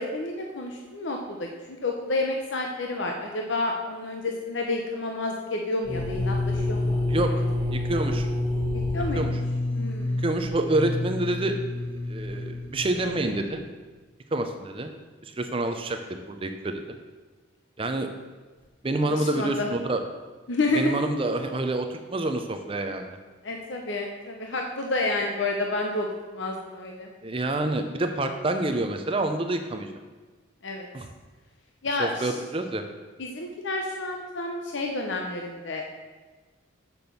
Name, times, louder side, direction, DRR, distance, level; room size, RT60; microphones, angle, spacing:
voice 1, 0.0-7.0 8.9-9.3 9.7-10.2 19.0-19.7 20.5-20.9 23.4-27.1 30.6-30.9 31.8-32.4 33.2-35.9, left 2 dB, 60° left, 2 dB, 0.8 m, -30 dB
sound 1, 5.8-13.6, left 2 dB, 10° left, 1.2 m, -28 dB
voice 2, 7.1-7.4 7.7-8.3 9.1-9.3 10.2-11.6 12.1-13.6 14.3-14.9 15.2-16.8 17.8-18.1 18.8-20.0 20.7-23.2 27.2-29.9 30.9-31.1 32.0-32.8, right 2 dB, 25° right, 6 dB, 0.5 m, -27 dB
6.9 x 6.0 x 6.8 m, 1.3 s
head